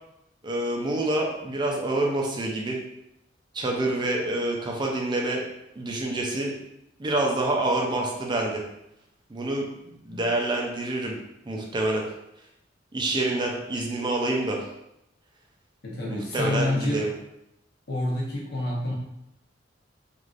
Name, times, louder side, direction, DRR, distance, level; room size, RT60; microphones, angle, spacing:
voice 1, 0.4-2.8 3.5-5.4 5.8-6.5 7.0-8.6 9.3-9.7 10.1-11.2 11.5-12.0 12.9-14.6 16.1-17.1, right 2 dB, 25° right, -1 dB, 0.4 m, -27 dB
voice 2, 15.8-17.0 17.9-18.9, left 1 dB, 60° left, -3 dB, 0.9 m, -28 dB
3.2 x 2.5 x 2.4 m, 0.84 s
head